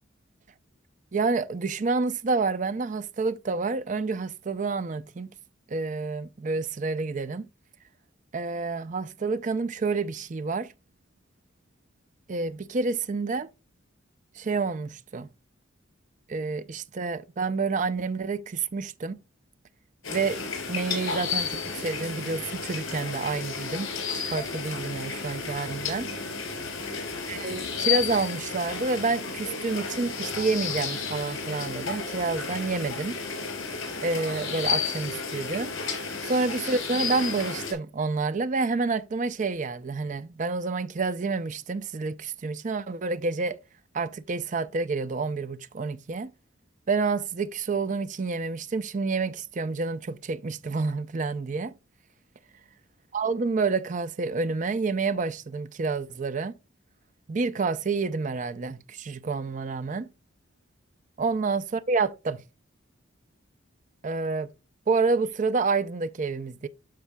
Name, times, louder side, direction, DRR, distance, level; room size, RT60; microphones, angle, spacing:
voice 1, 1.1-5.3 5.7-7.5 8.3-10.7 12.3-13.5 14.4-15.3 16.3-19.2 20.1-23.9 24.1-26.1 27.3-33.2 34.0-35.7 36.2-43.6 43.9-46.3 46.9-51.7 53.1-56.5 57.3-60.1 61.2-62.4 64.0-64.5 64.9-66.7, right 4 dB, 40° right, 0.4 m, -28 dB
sound 1, 20.0-37.7, left 5 dB, 85° left, 3.9 m, -32 dB
12.5 x 4.5 x 2.2 m
head